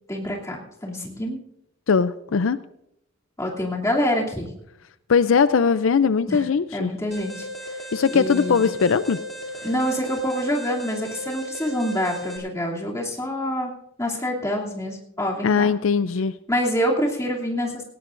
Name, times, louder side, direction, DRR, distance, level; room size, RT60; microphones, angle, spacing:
voice 1, 0.1-1.4 3.4-4.5 6.3-6.4 6.7-7.8 8.1-8.7 9.6-13.7 14.0-15.7 16.5-17.8, equal, 15° left, -2 dB, 2.8 m, -26 dB
voice 2, 1.9-2.6 5.1-6.9 7.9-9.2 9.5-9.7 15.4-16.3, left 5 dB, 80° left, 14 dB, 0.5 m, -20 dB
Alarm, 7.1-12.4, equal, ahead, 2.9 m, -35 dB
18.5 x 17.0 x 2.6 m, 0.78 s
head